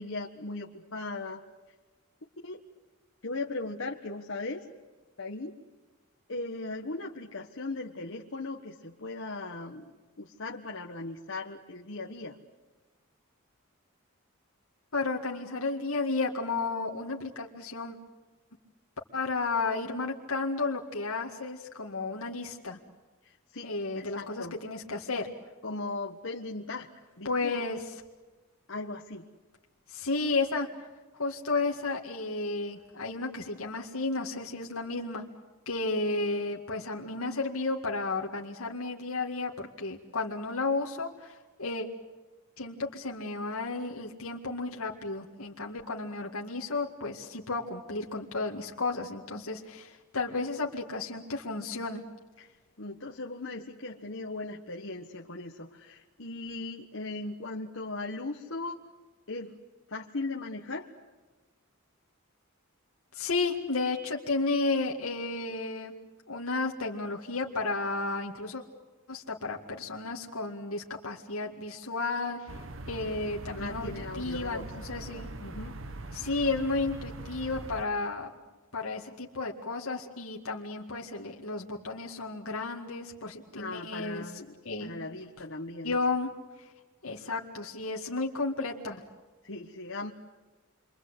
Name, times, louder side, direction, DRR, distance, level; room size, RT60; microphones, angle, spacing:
voice 1, 0.0-1.4 2.4-2.6 3.2-4.6 5.2-5.5 6.3-9.9 10.2-12.4 23.2-24.5 25.6-27.5 28.7-29.3 52.4-58.9 59.3-59.6 59.9-60.9 73.5-74.7 75.4-75.8 83.5-84.5 84.8-86.0 89.4-90.1, left 2 dB, 60° left, -1 dB, 1.6 m, -38 dB
voice 2, 14.9-18.0 19.1-22.8 23.6-25.3 27.2-27.9 29.9-30.7 31.1-35.2 35.7-41.9 42.6-52.0 63.1-65.9 66.3-68.6 69.1-72.6 72.9-75.3 76.1-78.3 78.7-84.3 84.7-85.0 85.8-86.7 87.0-89.0, left 3 dB, 80° left, 0 dB, 2.1 m, -33 dB
sound 1, 72.5-77.8, right 2 dB, 65° right, 1.3 m, -42 dB
29.5 x 24.0 x 8.1 m, 1.3 s
head